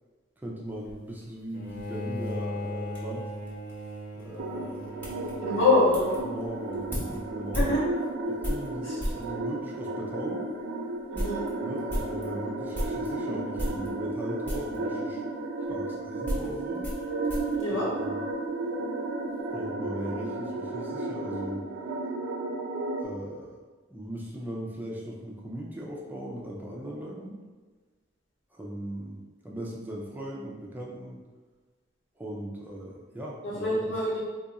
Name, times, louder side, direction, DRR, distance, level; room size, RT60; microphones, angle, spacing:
voice 1, 0.4-3.3 4.1-4.8 6.2-7.7 8.3-10.5 11.6-15.2 15.7-16.9 17.7-18.2 19.5-21.7 23.0-23.6 23.9-27.4 28.5-31.2 32.2-33.8, right 1 dB, 10° right, -3 dB, 0.4 m, -39 dB
sound 1, 0.7-9.3 10.1-10.2 10.6-10.7 10.9-13.1 13.5-14.2 14.4-14.8 15.6-18.6 18.8-19.4, equal, 10° left, 0.8 m, -36 dB
Bowed string instrument, 1.5-6.8, equal, 45° left, 0.6 m, -38 dB
sound 2, 4.4-23.0, right 2 dB, 80° right, 0.4 m, -33 dB
voice 2, 5.4-6.1 7.5-7.8 8.9-9.0 11.1-11.5 17.6-17.8 33.4-34.2, left 2 dB, 85° left, -8 dB, 1.5 m, -25 dB
2.7 x 2.4 x 4.0 m, 1.4 s
head